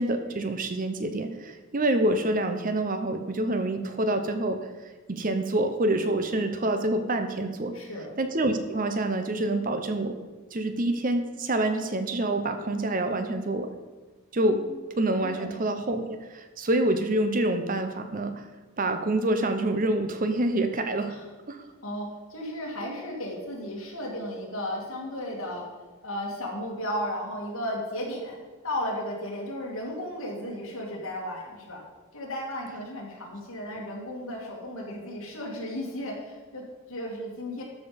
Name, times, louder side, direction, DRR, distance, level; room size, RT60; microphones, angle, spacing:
voice 1, 0.0-4.7 5.1-7.7 8.2-10.2 10.5-13.7 14.3-14.6 15.0-18.3 18.8-21.1 21.5-21.6, right 1 dB, 40° right, 8 dB, 0.7 m, -27 dB
voice 2, 7.7-8.2 14.6-14.8 15.3-15.5 21.1-21.3 21.6-25.7 26.0-28.4 28.6-31.8 32.1-37.6, left 1 dB, 65° left, -2 dB, 2.5 m, -34 dB
13.0 x 5.1 x 5.2 m, 1.3 s
head